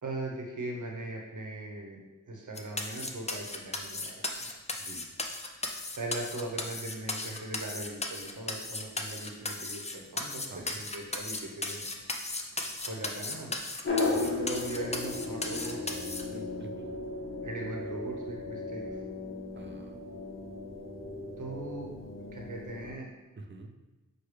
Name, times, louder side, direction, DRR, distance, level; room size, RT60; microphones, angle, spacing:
voice 1, 0.0-4.5 5.9-11.9 12.9-13.6 14.1-16.0 17.4-18.8 21.4-21.9 22.3-23.1, right 2 dB, 65° right, 0 dB, 0.9 m, -39 dB
sound 1, 2.6-16.2, left 2 dB, 20° left, 0.4 m, -36 dB
voice 2, 10.5-10.8 14.1-14.3 16.3-16.9 19.5-20.0 23.4-23.7, right 2 dB, 35° right, 5 dB, 0.5 m, -47 dB
sound 2, 13.8-22.9, left 3 dB, 40° left, 0.9 m, -36 dB
6.3 x 2.2 x 3.2 m, 1.1 s
wide cardioid pair, 65°, 32 cm